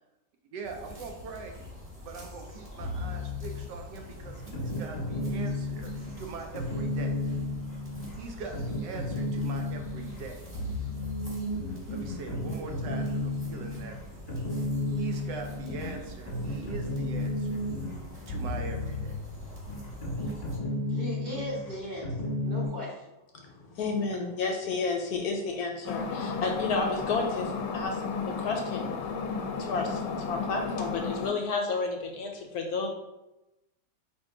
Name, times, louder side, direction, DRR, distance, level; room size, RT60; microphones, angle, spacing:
voice 1, 0.5-1.5 2.0-5.9 6.2-7.1 8.1-10.4 11.9-14.0 14.9-17.6 18.3-19.2, right 4 dB, 80° right, 3 dB, 1.3 m, -42 dB
sound 1, 0.6-20.6, equal, 10° right, 1.0 m, -46 dB
sound 2, 2.8-22.7, left 2 dB, 30° left, 0.9 m, -34 dB
voice 2, 20.9-23.1, equal, 45° right, -3 dB, 0.8 m, -37 dB
voice 3, 23.3-28.9 29.6-32.9, left 4 dB, 70° left, 2 dB, 1.0 m, -31 dB
sound 3, 25.9-31.3, left 5 dB, 85° left, 1.2 m, -33 dB
4.4 x 2.8 x 3.7 m, 0.96 s
omnidirectional pair, 1.9 m